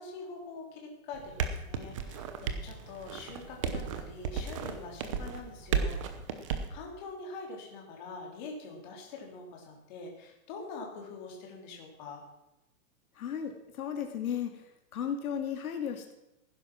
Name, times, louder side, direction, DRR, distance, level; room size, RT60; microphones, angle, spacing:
voice 1, 0.0-6.0 6.3-12.2, left 3 dB, 30° left, 0 dB, 3.3 m, -44 dB
sound 1, 1.1-6.7, right 6 dB, 20° right, 0.8 m, -34 dB
voice 2, 13.1-16.1, left 8 dB, 80° left, 4 dB, 2.2 m, -35 dB
16.0 x 10.5 x 6.0 m, 0.91 s
hypercardioid pair, 175°, 43 cm